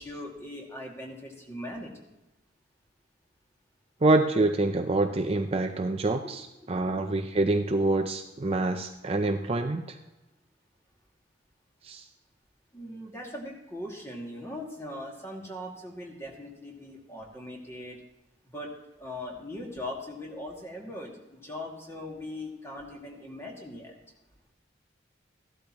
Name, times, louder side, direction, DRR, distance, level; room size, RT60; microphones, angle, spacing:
voice 1, 0.0-2.1 6.6-6.9 12.7-18.0 18.5-18.7 19.0-23.9, left 1 dB, 15° left, -1 dB, 2.2 m, -40 dB
voice 2, 4.0-10.0 11.8-12.1, right 2 dB, 30° right, 6 dB, 0.5 m, -26 dB
15.0 x 12.0 x 3.0 m, 1.0 s
head